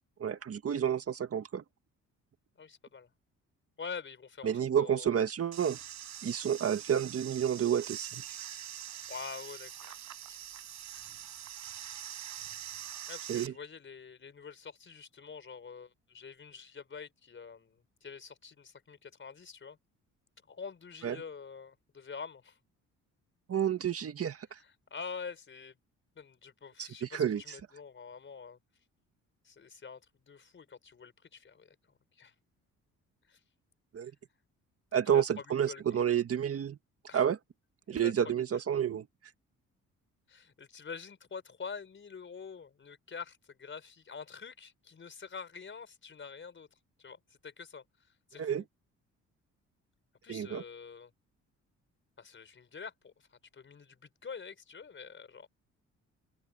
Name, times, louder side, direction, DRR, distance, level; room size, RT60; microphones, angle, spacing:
voice 1, 0.2-1.6 4.4-5.8 6.2-8.4 13.3-13.5 21.0-21.2 23.5-24.6 26.8-27.4 33.9-34.1 34.9-36.8 37.1-37.4 37.9-39.1 48.4-48.6 50.3-50.6, right 9 dB, 50° right, 1.8 m, -30 dB
voice 2, 2.6-3.1 3.8-5.2 9.1-10.0 10.3-10.4 13.1-19.8 20.5-22.6 24.6-25.8 26.1-28.6 29.4-30.0 30.3-31.7 32.1-32.3 33.3-33.4 34.0-34.1 35.1-35.8 37.1-37.2 37.9-38.6 40.3-46.7 47.0-47.8 48.3-48.7 50.2-51.1 52.2-55.5, left 5 dB, 40° left, 4.8 m, -46 dB
sound 1, 5.5-13.5, right 10 dB, 70° right, 6.0 m, -44 dB
cardioid pair, 90°, 30 cm